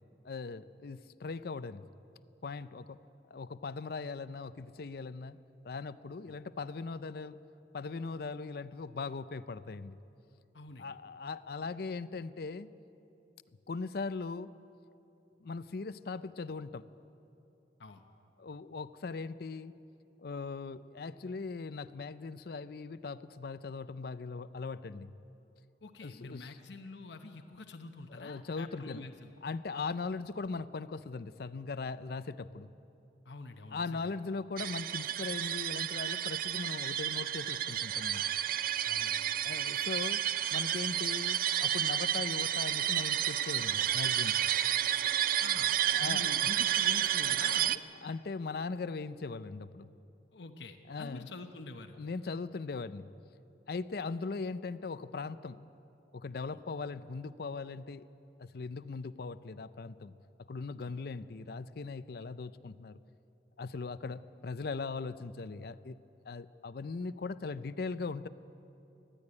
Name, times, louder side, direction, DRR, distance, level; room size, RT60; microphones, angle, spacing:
voice 1, 0.2-1.9 2.4-3.0 3.3-5.4 5.6-7.4 7.7-10.0 10.8-12.7 13.7-14.5 15.4-16.8 18.4-19.7 20.2-25.1 26.0-26.5 28.1-29.1 29.4-32.7 33.7-38.2 39.4-40.2 40.5-44.4 45.9-46.5 48.0-49.9 50.9-51.3 52.0-53.1 53.7-55.7 56.1-58.1 58.4-60.1 60.5-63.0 63.6-66.0 66.3-68.3, left 4 dB, 60° left, 14 dB, 0.5 m, -39 dB
voice 2, 10.5-10.9 17.8-18.0 25.8-29.3 33.2-34.1 38.8-39.2 45.4-45.7 46.0-47.8 50.3-52.0 56.5-56.6 60.8-61.0, left 3 dB, 80° left, 6 dB, 0.9 m, -46 dB
sound 1, 34.6-47.8, right 11 dB, 50° right, 0.4 m, -31 dB
20.0 x 14.0 x 9.7 m, 2.8 s
head